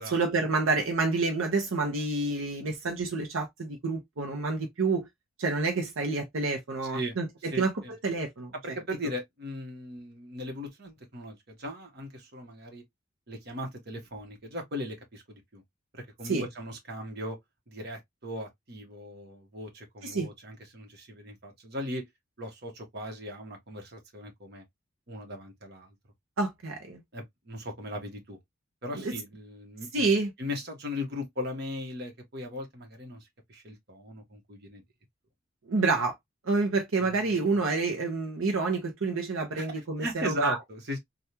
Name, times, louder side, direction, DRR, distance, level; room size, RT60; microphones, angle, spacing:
voice 1, 0.1-5.1 5.4-7.7 8.0-8.5 16.2-16.5 20.0-20.3 26.4-27.0 28.9-29.1 29.9-30.3 35.7-36.1 36.5-40.6, right 3 dB, 80° right, 0.7 m, -28 dB
voice 2, 6.8-7.1 7.5-7.9 8.6-12.8 13.3-15.6 16.0-17.4 17.7-22.1 22.4-24.6 25.1-25.9 27.1-28.4 28.8-30.1 30.4-34.8 37.0-37.5 39.6-41.0, left 1 dB, 50° right, 1.1 m, -38 dB
3.4 x 2.4 x 2.7 m
head